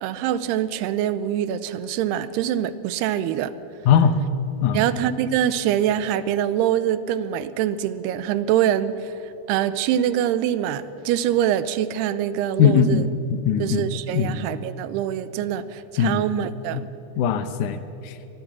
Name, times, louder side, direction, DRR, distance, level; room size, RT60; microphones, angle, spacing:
voice 1, 0.0-3.5 4.7-13.1 13.6-16.9, right 10 dB, 80° right, 14 dB, 2.7 m, -24 dB
voice 2, 12.6-13.9 14.1-14.4 16.0-16.2 16.7-16.8 17.2-18.2, left 7 dB, 75° left, 10 dB, 1.8 m, -20 dB
23.5 x 19.5 x 6.1 m, 2.8 s
omnidirectional pair, 4.7 m